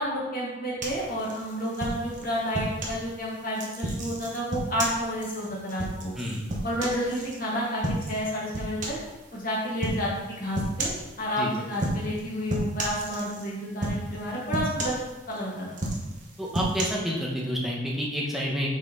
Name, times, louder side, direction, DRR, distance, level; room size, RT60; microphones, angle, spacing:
voice 1, 0.0-6.1 6.6-9.0 9.3-10.9 11.2-15.0 15.3-15.7, equal, 45° left, -6 dB, 1.7 m, -30 dB
sound 1, 0.8-3.0 3.5-7.4 7.8-8.2 8.5-9.1 9.8-10.0 10.5-11.1 11.7-12.2 12.5-13.5 13.8-14.2 14.5-15.4 15.7-16.8, right 1 dB, 40° right, 1.0 m, -31 dB
voice 2, 16.4-18.8, equal, ahead, -4 dB, 0.9 m, -29 dB
5.8 x 4.3 x 3.8 m, 1.1 s
head